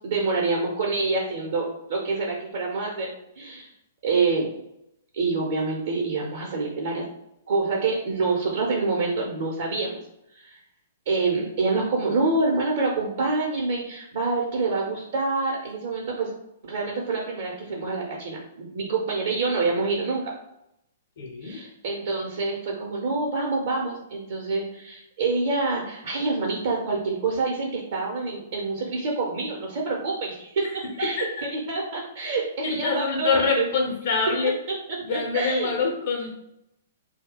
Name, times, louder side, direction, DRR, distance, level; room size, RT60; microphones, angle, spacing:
voice 1, 0.0-3.7 4.0-4.5 5.1-7.1 7.5-10.0 10.3-10.6 11.1-16.3 16.6-20.3 21.4-33.7 34.9-35.9, right 3 dB, 60° right, -3 dB, 0.8 m, -27 dB
voice 2, 21.2-21.6 31.0-31.3 32.6-34.6 35.0-36.3, left 5 dB, 55° left, 0 dB, 0.7 m, -25 dB
2.8 x 2.2 x 3.7 m, 0.82 s
figure-of-eight pair, 115°, 0 cm